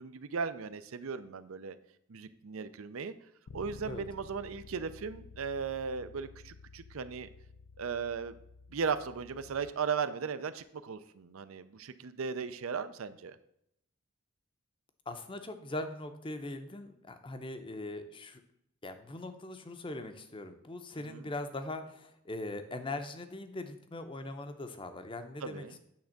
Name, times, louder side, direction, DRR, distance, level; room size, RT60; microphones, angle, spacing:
voice 1, 0.0-1.8 2.1-3.1 3.5-7.3 7.8-8.4 8.7-13.4 21.1-21.3 25.4-25.8, right 5 dB, 75° right, 13 dB, 0.5 m, -37 dB
Bass guitar, 3.5-9.7, left 5 dB, 85° left, 0.5 m, -52 dB
voice 2, 15.1-18.4 18.8-25.8, left 2 dB, 25° left, 8 dB, 0.6 m, -41 dB
8.7 x 3.5 x 6.4 m, 0.76 s
head